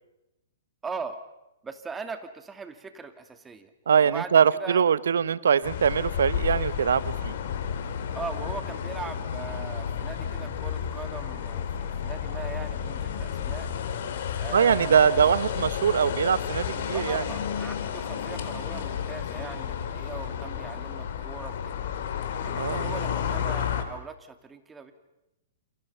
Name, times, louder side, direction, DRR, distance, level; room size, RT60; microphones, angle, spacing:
voice 1, 0.8-1.2 1.6-3.7 4.0-4.3 4.6-4.8 8.1-13.7 14.4-15.4 16.9-21.7 22.4-24.9, right 4 dB, 15° right, 8 dB, 2.5 m, -40 dB
voice 2, 3.9-7.3 14.5-17.2 22.6-23.0, right 7 dB, 70° right, 18 dB, 1.0 m, -22 dB
sound 1, 5.6-23.8, left 8 dB, 55° left, 3.3 m, -32 dB
29.0 x 28.5 x 5.7 m, 0.95 s
hypercardioid pair, 115°, 0 cm